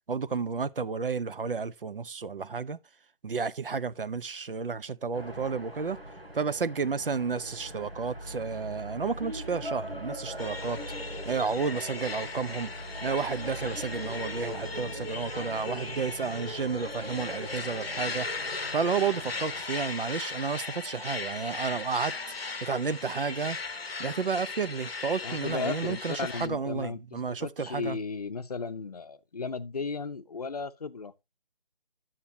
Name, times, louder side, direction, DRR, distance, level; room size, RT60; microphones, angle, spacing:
voice 1, 0.1-2.8 3.2-6.0 6.3-10.8 11.2-12.7 13.0-18.3 18.7-22.1 22.6-23.6 24.0-28.0, right 5 dB, 65° right, 0.7 m, -31 dB
sound 1, 5.1-19.6, equal, 90° right, 6.3 m, -41 dB
sound 2, 10.4-26.5, left 4 dB, 90° left, 0.9 m, -38 dB
voice 2, 25.2-31.2, left 4 dB, 40° left, 0.6 m, -35 dB
10.0 x 7.4 x 2.7 m
figure-of-eight pair, 155°, 29 cm